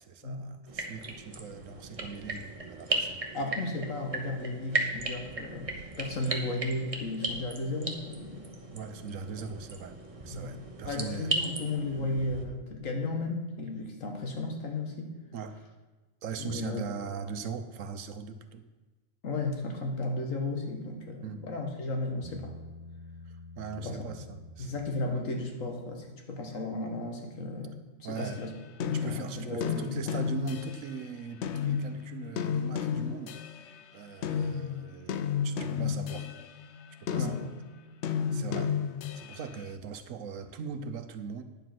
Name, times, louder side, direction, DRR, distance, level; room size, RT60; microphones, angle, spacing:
voice 1, 0.0-3.2 8.7-10.0 10.2-11.3 15.3-15.6 16.2-18.7 21.2-21.4 23.3-24.8 28.0-28.4 28.9-33.4 33.9-36.3 37.0-37.5 38.3-38.7 39.1-41.4, right 6 dB, 80° right, 9 dB, 1.2 m, -40 dB
sound 1, 0.7-12.4, right 2 dB, 30° right, 1.1 m, -36 dB
voice 2, 3.3-8.5 10.3-15.1 16.4-16.8 19.2-22.6 23.8-24.0 24.6-28.5 28.8-30.2 37.1-37.4, left 2 dB, 80° left, 3 dB, 1.9 m, -34 dB
Bass guitar, 22.2-25.6, left 1 dB, 60° right, 1.9 m, -48 dB
sound 2, 28.2-31.0 31.4-33.8 34.2-39.5, left 7 dB, 65° left, 0.8 m, -32 dB
9.9 x 7.5 x 5.9 m, 1.3 s
omnidirectional pair, 1.3 m